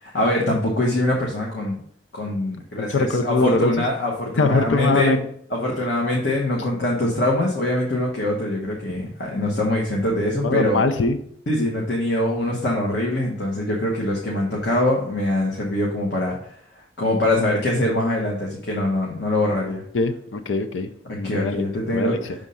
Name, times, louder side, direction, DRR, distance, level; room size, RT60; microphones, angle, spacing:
voice 1, 0.0-1.8 2.1-5.1 5.5-10.8 11.5-16.5 17.0-19.8 21.2-22.3, left 1 dB, 65° left, -2 dB, 1.2 m, -23 dB
voice 2, 2.8-3.7 4.4-5.2 10.4-11.2 19.9-21.6 21.9-22.2, left 3 dB, 85° left, 8 dB, 0.6 m, -22 dB
6.5 x 3.6 x 5.5 m, 0.67 s
head